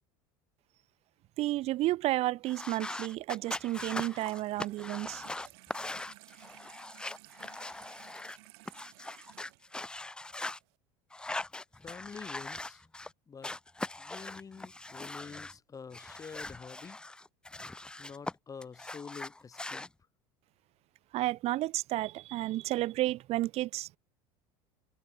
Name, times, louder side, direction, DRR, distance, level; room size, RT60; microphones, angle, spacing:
voice 1, 1.4-5.2 21.1-24.0, right 16 dB, 50° right, 0.8 m, -32 dB
sound 1, 2.5-8.4 8.7-10.6 11.1-13.1 13.4-15.6 15.9-18.3 18.6-19.9, left 2 dB, 5° left, 0.4 m, -41 dB
Water tap faucet / Sink (filling or washing), 3.7-10.7, right 27 dB, 75° right, 3.1 m, -56 dB
voice 2, 11.8-12.8 13.3-13.5 14.0-17.0 18.0-19.9, left 5 dB, 25° left, 5.5 m, -47 dB
supercardioid pair, 95°, 13 cm